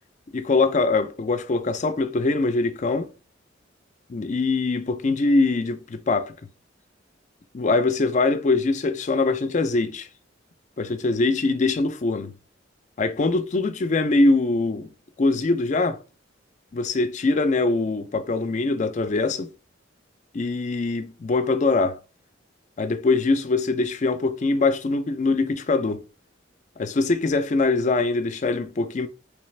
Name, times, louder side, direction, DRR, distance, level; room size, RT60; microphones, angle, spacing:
voice 1, 0.3-3.1 4.1-6.3 7.5-10.1 10.8-12.3 13.0-14.9 15.2-16.0 16.7-19.5 20.3-22.0 22.8-26.0 26.8-29.1, left 3 dB, 40° left, 0.4 m, -23 dB
3.3 x 3.2 x 3.2 m
head